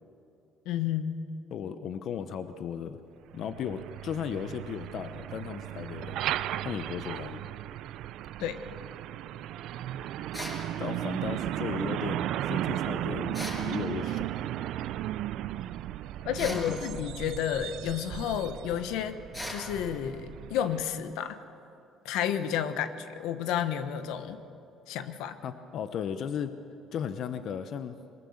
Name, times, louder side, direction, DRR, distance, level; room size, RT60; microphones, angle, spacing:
voice 1, 0.6-1.2 8.4-8.6 16.2-19.2 19.5-21.4 22.0-24.4 24.9-25.4, left 9 dB, 85° left, 10 dB, 1.2 m, -31 dB
voice 2, 1.5-3.0 3.3-7.4 10.8-14.3 16.4-16.8 25.4-26.5 26.9-28.0, left 8 dB, 60° left, 10 dB, 0.9 m, -36 dB
Truck, 3.3-21.0, right 13 dB, 70° right, 0.5 m, -35 dB
sound 1, 10.3-10.6 13.3-13.7 16.4-16.7 19.3-19.7, left 1 dB, 15° left, 6.1 m, -37 dB
22.0 x 20.5 x 7.2 m, 2.7 s
cardioid pair, 120°, 0 cm